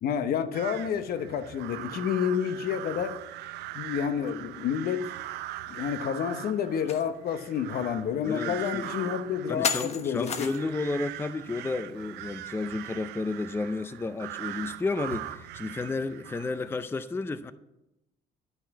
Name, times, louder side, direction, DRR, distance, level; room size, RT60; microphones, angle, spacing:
voice 1, 0.0-3.1 3.7-5.1 5.7-10.5, left 8 dB, 65° left, 1.0 m, -29 dB
sound 1, 0.5-16.8, right 14 dB, 80° right, 0.6 m, -41 dB
sound 2, 6.9-7.0 7.5-7.6 8.6-8.7 9.6-10.8, left 6 dB, 40° left, 1.2 m, -31 dB
voice 2, 8.3-9.1 9.5-17.5, left 3 dB, 15° left, 0.5 m, -32 dB
11.5 x 6.1 x 8.1 m
cardioid pair, 110°, 17 cm